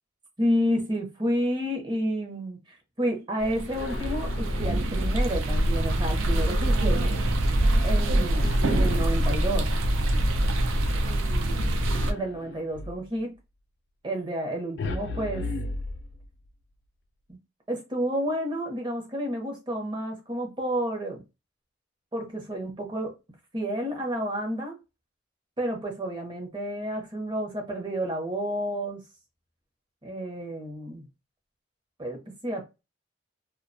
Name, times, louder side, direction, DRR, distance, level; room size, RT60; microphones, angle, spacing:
voice 1, 0.4-7.1 7.8-9.7 11.0-11.7 12.1-13.3 14.0-15.5 17.3-17.4 17.7-21.2 22.1-23.2 23.5-24.8 25.6-29.0 30.0-31.1 32.0-32.6, equal, 25° right, 0.7 m, -30 dB
sound 1, 3.4-12.1, right 1 dB, 90° right, 0.4 m, -24 dB
sound 2, 3.7-5.2 8.4-9.9 11.9-13.1 14.8-16.5, left 2 dB, 60° left, 0.3 m, -36 dB
2.3 x 2.2 x 2.6 m
head